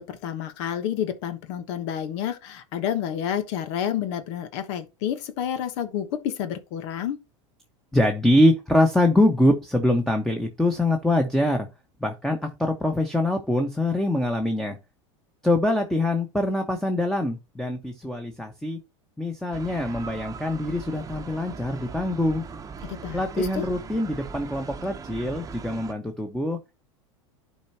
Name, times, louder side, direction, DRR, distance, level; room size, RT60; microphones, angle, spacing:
voice 1, 0.0-7.2 22.8-23.7, left 9 dB, 65° left, 1.1 m, -30 dB
voice 2, 7.9-11.7 12.0-14.8 15.4-18.8 19.2-22.4 23.1-26.8, left 1 dB, 5° left, 1.2 m, -24 dB
sound 1, 19.5-25.9, right 5 dB, 20° right, 0.9 m, -39 dB
11.5 x 4.7 x 2.9 m
hypercardioid pair, 105°, 16 cm